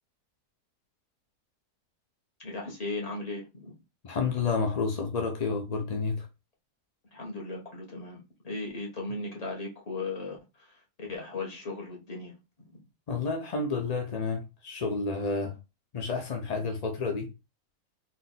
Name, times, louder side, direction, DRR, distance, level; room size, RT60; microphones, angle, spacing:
voice 1, 2.4-3.7 7.1-12.3 12.7-12.8, left 3 dB, 25° left, 1.3 m, -37 dB
voice 2, 4.0-6.3 13.1-15.5 15.9-17.3, left 4 dB, 50° left, 0.4 m, -30 dB
4.1 x 2.6 x 4.0 m
omnidirectional pair, 1.7 m